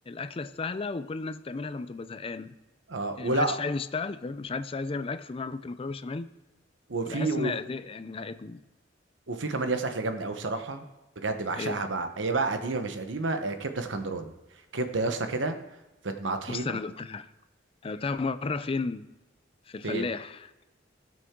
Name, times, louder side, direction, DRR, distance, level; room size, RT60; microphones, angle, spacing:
voice 1, 0.1-2.5 3.2-6.3 7.0-8.6 11.6-11.8 16.5-17.3 17.8-19.1 19.7-20.5, left 4 dB, 30° left, 0.4 m, -33 dB
voice 2, 2.9-3.6 6.9-7.5 9.3-10.8 11.2-14.3 14.7-15.6 16.0-16.6 19.8-20.1, right 3 dB, 85° right, 1.1 m, -30 dB
17.5 x 6.2 x 3.7 m
head